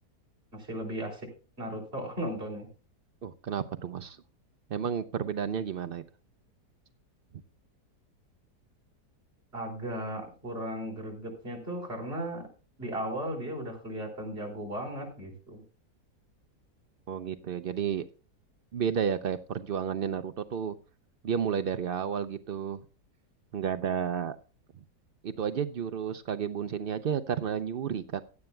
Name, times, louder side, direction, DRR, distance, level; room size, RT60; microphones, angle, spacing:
voice 1, 0.5-1.3 1.6-2.7 9.5-12.5 12.8-15.6, right 1 dB, 35° right, 0 dB, 4.5 m, -36 dB
voice 2, 3.2-4.2 4.7-6.0 17.1-18.1 18.7-20.7 21.2-22.8 23.5-24.4 25.2-28.2, right 8 dB, 80° right, 11 dB, 0.5 m, -31 dB
16.5 x 10.5 x 2.2 m, 0.36 s
omnidirectional pair, 1.8 m